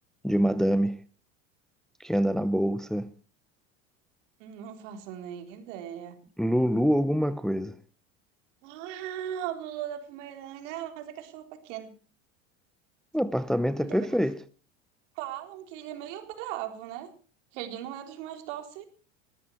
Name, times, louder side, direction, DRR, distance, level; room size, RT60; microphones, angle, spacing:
voice 1, 0.2-1.0 2.0-3.1 6.4-7.8 13.1-14.4, equal, ahead, 0.9 m, -25 dB
voice 2, 4.4-6.2 8.6-11.9 13.8-14.1 15.2-17.1 17.5-18.8, right 11 dB, 70° right, 4.0 m, -38 dB
20.5 x 14.5 x 4.6 m
hypercardioid pair, 95°, 38 cm